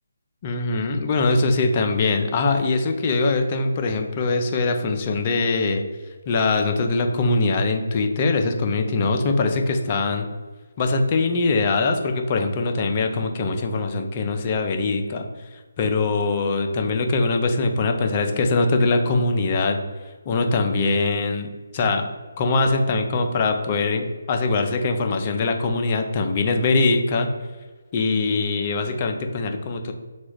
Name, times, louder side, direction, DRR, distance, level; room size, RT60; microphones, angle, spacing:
voice 1, 0.4-5.8 6.3-10.3 10.8-15.2 15.8-19.8 20.3-22.1 22.4-27.3 27.9-29.9, left 3 dB, 30° left, 4 dB, 0.5 m, -22 dB
4.0 x 2.4 x 4.6 m, 1.4 s
figure-of-eight pair, 150°, 0 cm